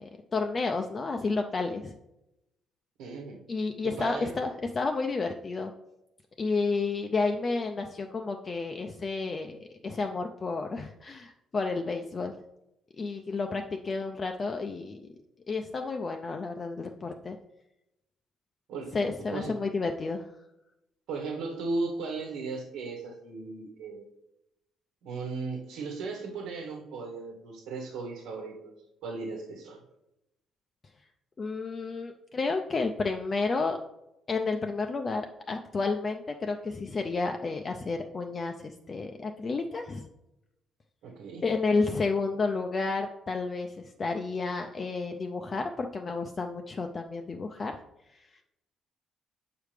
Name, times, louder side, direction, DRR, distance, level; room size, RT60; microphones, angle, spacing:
voice 1, 0.0-2.0 3.5-5.7 6.4-12.3 13.0-15.1 15.5-17.4 18.9-20.3 31.4-33.8 34.3-40.1 41.4-47.7, left 3 dB, 25° left, 4 dB, 0.4 m, -31 dB
voice 2, 3.0-3.4 3.8-4.3 18.7-19.0 19.3-19.6 21.1-24.0 25.0-28.7 29.0-29.8 41.0-41.4, right 3 dB, 85° right, 0 dB, 1.3 m, -36 dB
7.5 x 4.9 x 3.4 m, 0.89 s
cardioid pair, 150°, 0 cm